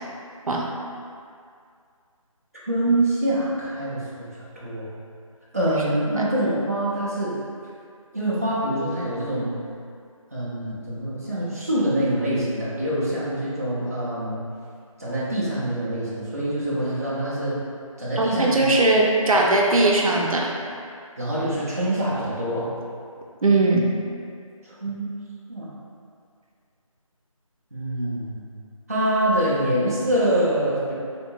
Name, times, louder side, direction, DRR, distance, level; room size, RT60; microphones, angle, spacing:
voice 1, 2.7-4.9 5.5-7.3 8.1-9.5 10.3-14.4 15.0-17.6 18.0-18.7 21.2-22.7 24.6-25.1 25.5-25.7 27.7-28.5 28.9-30.9, right 1 dB, 25° right, -9 dB, 0.4 m, -25 dB
voice 2, 18.2-20.5 23.4-23.9, right 2 dB, 75° right, -1 dB, 0.5 m, -19 dB
3.5 x 2.5 x 2.8 m, 2.3 s
figure-of-eight pair, 170°, 18 cm